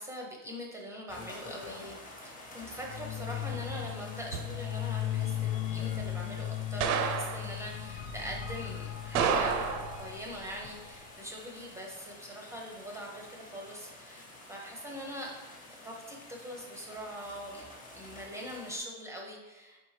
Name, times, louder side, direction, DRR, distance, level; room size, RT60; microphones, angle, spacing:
voice 1, 0.0-9.7 10.0-15.3 15.7-17.6 17.9-19.8, equal, 5° right, -1 dB, 0.6 m, -43 dB
sound 1, 1.1-18.8, left 2 dB, 20° left, 1.0 m, -50 dB
sound 2, 2.8-11.1, left 11 dB, 55° left, 0.5 m, -37 dB
sound 3, 3.5-3.9 4.3-4.6 6.8-7.6 9.1-10.1, right 6 dB, 70° right, 0.6 m, -30 dB
4.5 x 3.6 x 3.2 m, 1.1 s
supercardioid pair, 110°, 45 cm